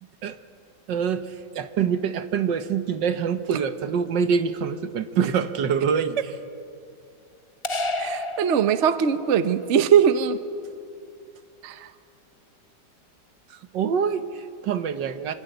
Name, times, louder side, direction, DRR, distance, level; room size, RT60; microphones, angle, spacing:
voice 1, 0.9-6.2 13.5-15.3, right 7 dB, 75° right, 10 dB, 1.7 m, -25 dB
voice 2, 5.9-6.2 8.0-10.4 11.6-11.9, right 8 dB, 50° right, 11 dB, 1.1 m, -21 dB
sound 1, 7.6-9.3, left 2 dB, 25° left, 0.6 m, -30 dB
26.0 x 25.5 x 8.0 m, 2.4 s
omnidirectional pair, 2.0 m